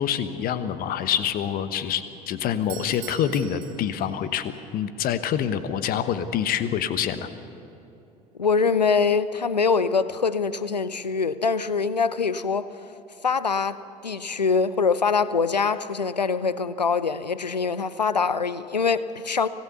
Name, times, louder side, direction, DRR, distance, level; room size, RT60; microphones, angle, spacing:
voice 1, 0.0-7.3, left 9 dB, 45° left, 1.2 m, -26 dB
Doorbell, 2.5-4.5, right 13 dB, 55° right, 1.7 m, -43 dB
voice 2, 8.4-12.7 13.2-19.5, left 5 dB, 85° left, 0.6 m, -24 dB
25.5 x 18.0 x 7.0 m
figure-of-eight pair, 60°, 21 cm